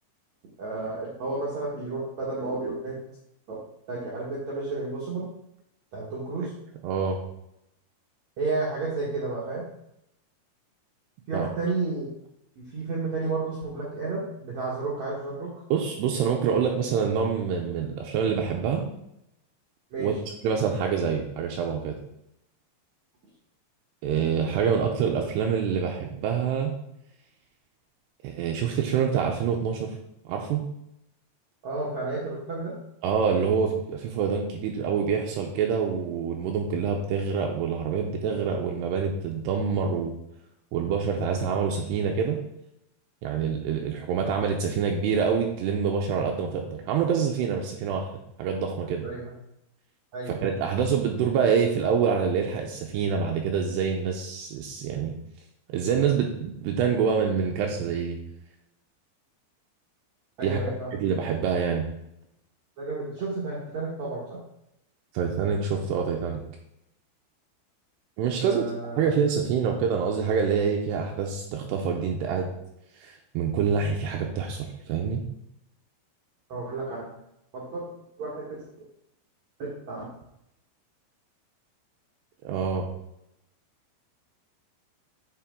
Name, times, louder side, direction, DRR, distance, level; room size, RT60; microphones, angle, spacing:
voice 1, 0.6-3.0 3.5-3.6 3.9-5.3 5.9-6.5 8.4-9.6 11.3-12.1 12.6-15.5 19.9-20.1 31.6-32.7 49.0-49.2 50.1-50.3 60.4-60.9 62.8-64.4 68.4-69.1 76.5-77.1 77.5-77.8 78.2-78.6 79.6-80.1, right 3 dB, 65° right, -6 dB, 1.8 m, -31 dB
voice 2, 6.8-7.2 11.3-11.5 15.7-18.9 20.0-20.1 20.4-22.0 24.0-26.7 28.2-29.9 30.3-30.6 33.0-40.1 40.7-42.4 43.2-48.1 48.4-49.1 50.3-55.1 55.7-58.2 60.4-60.6 61.0-61.8 65.1-66.4 68.2-72.5 73.0-75.2 82.4-82.9, right 6 dB, 85° right, 1 dB, 2.6 m, -26 dB
8.7 x 5.2 x 3.6 m, 0.80 s
omnidirectional pair, 5.2 m